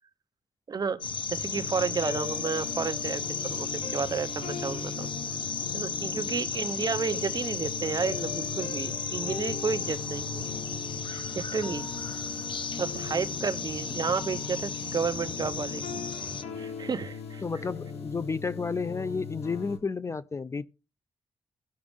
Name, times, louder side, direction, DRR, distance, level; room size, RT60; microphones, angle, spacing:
voice 1, 0.7-1.0 1.3-5.1 5.7-10.4 11.1-11.9 12.8-16.0 16.6-17.4, right 5 dB, 40° right, 0.8 m, -31 dB
sound 1, 1.0-16.4, left 6 dB, 55° left, 1.0 m, -35 dB
sound 2, 1.5-19.8, left 6 dB, 85° left, 1.7 m, -39 dB
voice 2, 17.4-20.7, left 4 dB, 30° left, 0.4 m, -32 dB
17.0 x 6.1 x 3.5 m
wide cardioid pair, 110°, 10 cm